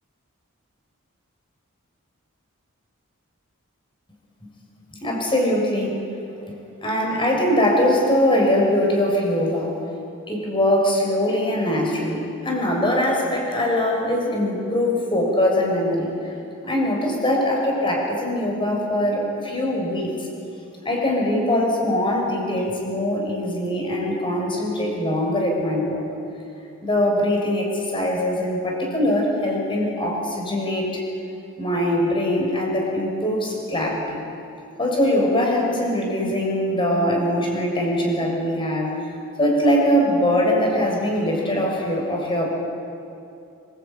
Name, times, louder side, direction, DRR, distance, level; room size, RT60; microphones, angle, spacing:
voice 1, 5.0-6.0 6.8-9.7 10.3-16.3 16.6-20.1 20.9-26.0 26.8-30.9 31.6-34.2 34.8-38.9 39.4-42.5, left 1 dB, 25° left, 0 dB, 6.8 m, -22 dB
26.5 x 22.0 x 9.2 m, 2.6 s
head